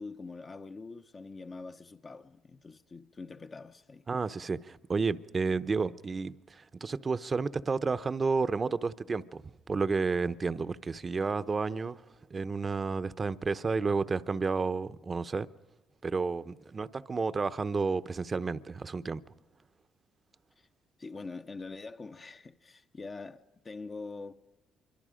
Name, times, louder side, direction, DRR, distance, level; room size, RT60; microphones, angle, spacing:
voice 1, 0.0-4.1 20.6-20.7 21.0-24.4, left 3 dB, 35° left, 0.9 m, -44 dB
voice 2, 4.1-12.0 12.3-15.5 16.0-19.2, right 4 dB, 30° right, 0.8 m, -31 dB
26.0 x 23.5 x 5.1 m
cardioid pair, 85°, 0 cm